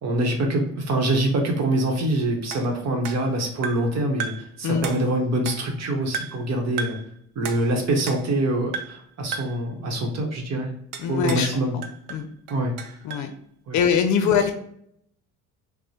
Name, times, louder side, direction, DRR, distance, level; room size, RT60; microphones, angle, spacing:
voice 1, 0.0-4.3 4.6-7.0 7.4-10.7 11.1-11.8 12.5-12.7 13.7-13.8 14.2-14.3, right 1 dB, 55° right, 2 dB, 0.9 m, -24 dB
sound 1, 2.5-3.9 4.2-4.5 4.8-5.8 6.1-6.5 6.8-7.1 7.4-8.4 8.7-9.1 9.3-9.6 10.9-11.5 11.8-13.3, right 6 dB, 90° right, 0.6 m, -35 dB
voice 2, 11.0-11.5 11.7-11.8 12.1-12.3 13.0-13.3 13.7-14.5, left 7 dB, 65° left, 7 dB, 0.5 m, -22 dB
5.9 x 2.1 x 2.8 m, 0.70 s
cardioid pair, 105°, 31 cm